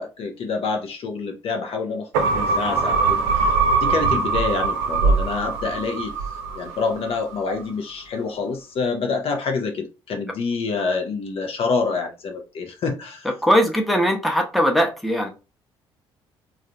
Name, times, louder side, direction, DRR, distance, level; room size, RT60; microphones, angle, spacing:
voice 1, 0.0-3.5 3.8-6.1 6.5-13.3, left 4 dB, 45° left, 0.7 m, -27 dB
sound 1, 2.1-6.8 7.2-7.3, right 4 dB, 65° right, 0.6 m, -21 dB
voice 2, 13.4-15.3, equal, ahead, 0.9 m, -20 dB
3.7 x 2.4 x 3.2 m
figure-of-eight pair, 45°, 13 cm